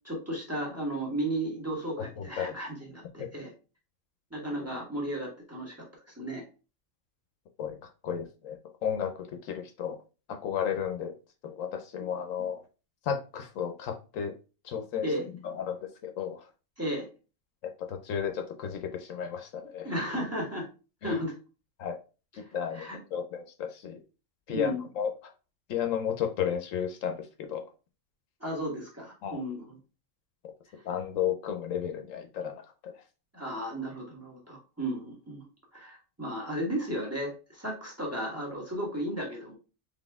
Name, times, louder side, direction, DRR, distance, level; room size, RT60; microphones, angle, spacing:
voice 1, 0.0-3.5 4.3-5.7 6.2-6.4 15.0-15.2 16.8-17.1 19.8-20.7 21.0-21.3 22.7-23.0 24.5-24.8 28.4-29.6 33.3-35.4 35.7-39.6, right 1 dB, 10° right, -1 dB, 1.4 m, -34 dB
voice 2, 2.2-2.6 3.2-3.3 7.6-10.0 10.3-11.1 11.4-12.6 13.0-14.3 14.6-16.5 17.6-19.9 21.0-21.2 21.8-22.0 22.3-24.0 24.5-25.3 25.7-27.7 29.2-29.4 30.8-33.0, left 8 dB, 75° left, 6 dB, 1.0 m, -33 dB
4.1 x 3.3 x 3.4 m, 0.33 s
omnidirectional pair, 1.4 m